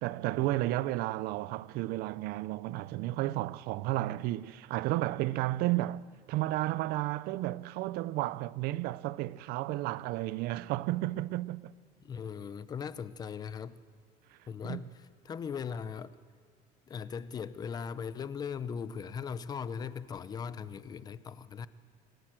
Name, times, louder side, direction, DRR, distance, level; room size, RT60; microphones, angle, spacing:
voice 1, 0.0-11.7 14.6-14.8, right 17 dB, 70° right, 0.6 m, -32 dB
voice 2, 12.0-13.8 14.5-16.2 16.9-21.7, left 6 dB, 25° left, 0.6 m, -39 dB
26.0 x 17.0 x 7.6 m
cardioid pair, 165°, 16 cm